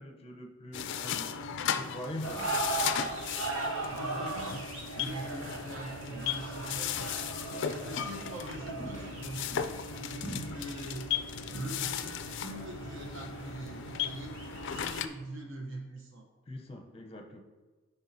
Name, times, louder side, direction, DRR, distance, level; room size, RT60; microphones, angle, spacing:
voice 1, 0.0-1.4 1.7-2.6 16.5-17.4, left 1 dB, 25° left, 3 dB, 0.7 m, -43 dB
sound 1, 0.7-15.1, left 8 dB, 55° left, 0.3 m, -37 dB
sound 2, 2.2-15.0, right 2 dB, 85° right, 1.7 m, -39 dB
voice 2, 3.9-4.7 4.9-7.0 7.7-9.6 9.9-11.1 11.4-14.4 14.7-16.2, right 1 dB, 60° right, 1 dB, 0.9 m, -42 dB
sound 3, 7.5-8.1 8.8-9.6 10.2-10.8 11.1-11.2 11.5-11.9, equal, 15° right, 1.6 m, -43 dB
8.0 x 5.5 x 2.7 m, 1.3 s
head